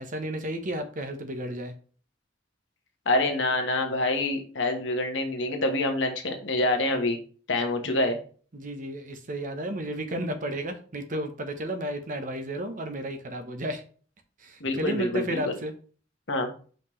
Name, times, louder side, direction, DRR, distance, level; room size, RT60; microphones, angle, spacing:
voice 1, 0.0-1.7 7.8-7.9 8.5-13.8 14.4-15.7, right 1 dB, 45° right, 8 dB, 0.9 m, -33 dB
voice 2, 3.0-7.2 7.5-8.2 14.6-15.5 16.3-16.5, left 2 dB, 75° left, 4 dB, 1.3 m, -26 dB
5.7 x 5.2 x 3.2 m, 0.41 s
head